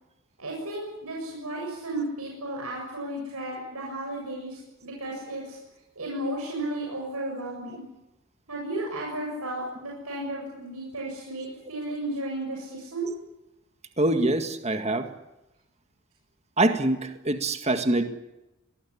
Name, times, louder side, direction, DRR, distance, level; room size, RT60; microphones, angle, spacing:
voice 1, 0.4-5.6 6.0-7.9 8.5-13.1, right 1 dB, 90° right, -1 dB, 7.3 m, -34 dB
voice 2, 14.0-15.1 16.6-18.0, right 2 dB, 30° right, 7 dB, 1.9 m, -24 dB
24.0 x 20.0 x 9.9 m, 0.96 s
head